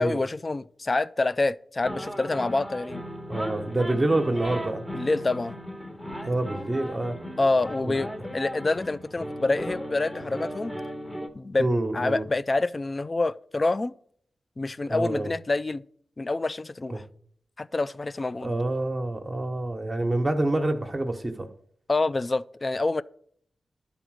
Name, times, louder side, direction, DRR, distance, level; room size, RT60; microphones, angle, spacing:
voice 1, 0.0-3.0 4.9-5.6 7.4-10.7 11.3-11.7 11.9-13.9 14.6-15.8 16.2-17.0 17.6-18.5 21.9-23.0, left 2 dB, 45° left, 0.3 m, -27 dB
sound 1, 1.8-11.3, equal, 5° left, 1.3 m, -36 dB
voice 2, 3.3-4.8 6.2-7.2 7.8-8.0 11.6-12.2 14.9-15.3 16.9-17.0 18.4-21.5, right 2 dB, 30° right, 1.1 m, -27 dB
11.0 x 4.0 x 6.3 m
cardioid pair, 45°, 0 cm